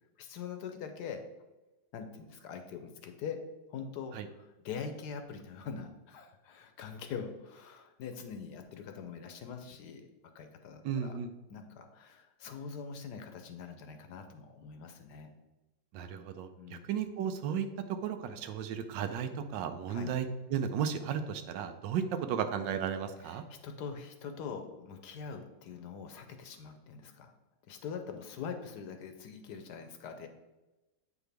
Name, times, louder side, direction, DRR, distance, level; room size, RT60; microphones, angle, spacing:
voice 1, 0.2-1.2 1.9-3.4 3.7-10.1 10.3-11.1 11.5-15.3 16.6-16.9 19.9-20.1 23.2-27.3 27.7-30.3, left 6 dB, 70° left, 6 dB, 1.2 m, -43 dB
voice 2, 10.8-11.3 15.9-23.4, right 7 dB, 80° right, 8 dB, 1.3 m, -34 dB
8.1 x 4.9 x 3.4 m, 1.1 s
omnidirectional pair, 2.0 m